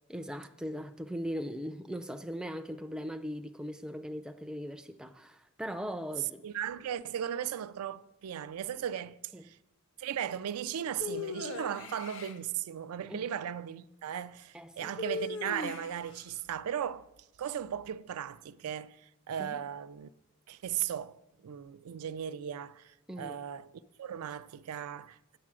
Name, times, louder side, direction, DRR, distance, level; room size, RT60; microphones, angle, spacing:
voice 1, 0.1-6.5 9.3-9.4 13.1-13.3 14.5-15.0 19.4-19.7 23.1-23.4, equal, 5° right, 0.3 m, -39 dB
voice 2, 6.4-9.6 10.0-17.1 17.4-19.0 19.3-20.1 20.5-23.7 24.0-25.4, right 9 dB, 85° right, 0.4 m, -37 dB
sound 1, 11.0-12.4 15.0-16.1, left 3 dB, 55° left, 0.6 m, -38 dB
8.5 x 7.5 x 6.1 m
head